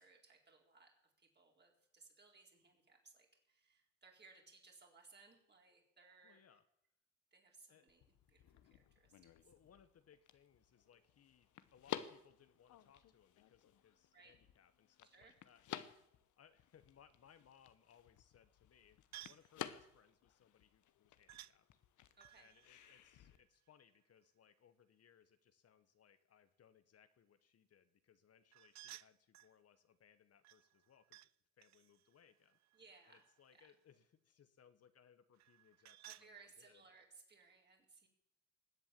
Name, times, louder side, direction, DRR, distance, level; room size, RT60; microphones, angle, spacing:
voice 1, 0.0-6.4 7.3-9.3 14.1-14.4 15.0-15.4 22.2-22.5 32.7-33.2 33.5-33.7 36.0-38.1, right 4 dB, 35° right, 1 dB, 4.2 m, -64 dB
voice 2, 6.2-6.6 7.7-7.9 9.4-15.8 16.4-19.0 19.2-21.7 22.3-31.3 31.6-32.6 33.1-36.8, left 8 dB, 55° left, 11 dB, 1.1 m, -68 dB
sound 1, 7.9-23.4, left 11 dB, 75° left, 1.0 m, -53 dB
sound 2, 19.1-19.5 21.3-21.6 22.2-24.0 28.5-29.6 30.4-31.3 31.6-33.5 35.4-36.3, right 14 dB, 65° right, 0.5 m, -58 dB
20.0 x 8.1 x 7.4 m, 0.77 s
cardioid pair, 90°, 30 cm